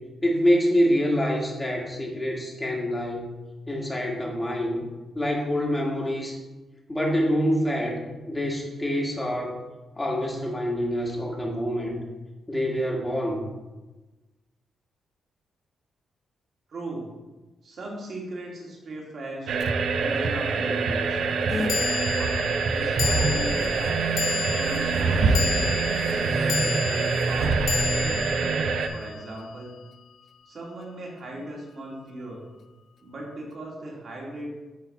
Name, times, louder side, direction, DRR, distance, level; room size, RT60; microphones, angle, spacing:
voice 1, 0.2-3.3 3.7-4.8 5.1-6.4 6.9-8.0 8.3-9.6 10.0-12.0 12.5-13.4, equal, 15° left, -1 dB, 1.7 m, -26 dB
voice 2, 16.7-17.1 17.6-19.6 20.0-21.2 21.8-22.5 22.7-24.1 24.4-28.4 28.9-29.8 30.5-32.5 33.0-34.5, right 1 dB, 55° right, -2 dB, 2.1 m, -38 dB
sound 1, 19.5-28.9, right 4 dB, 70° right, 0.6 m, -25 dB
sound 2, 19.6-19.7 21.7-30.1, left 6 dB, 65° left, 0.4 m, -32 dB
sound 3, 21.5-21.7 23.1-27.5, left 3 dB, 40° left, 0.8 m, -40 dB
8.6 x 3.9 x 4.2 m, 1.1 s
cardioid pair, 100°, 0 cm